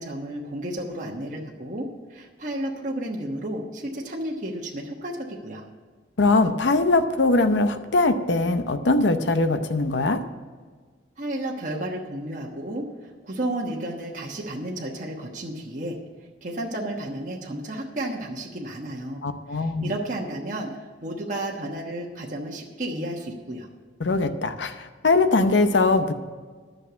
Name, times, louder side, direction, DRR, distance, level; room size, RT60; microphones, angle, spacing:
voice 1, 0.0-1.8 2.1-5.6 11.2-16.0 16.4-19.2 19.5-23.7, right 1 dB, 45° right, -2 dB, 1.2 m, -32 dB
voice 2, 6.2-10.2 19.2-19.9 24.0-26.1, left 3 dB, 80° left, 9 dB, 0.7 m, -21 dB
11.0 x 6.5 x 8.1 m, 1.5 s
head